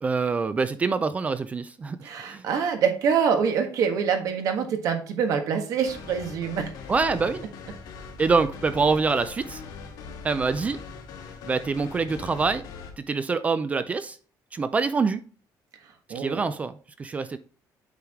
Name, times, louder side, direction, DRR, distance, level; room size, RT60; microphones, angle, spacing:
voice 1, 0.0-2.5 6.9-7.4 8.2-9.6 10.2-10.8 11.4-12.6 13.0-14.2 14.5-15.2 16.1-17.4, right 4 dB, 20° right, 13 dB, 0.4 m, -25 dB
voice 2, 2.0-6.7 16.1-16.4, right 7 dB, 55° right, 5 dB, 1.5 m, -25 dB
sound 1, 5.8-12.9, left 5 dB, 85° left, 2.0 m, -41 dB
8.2 x 4.7 x 3.6 m, 0.41 s
cardioid pair, 170°, 7 cm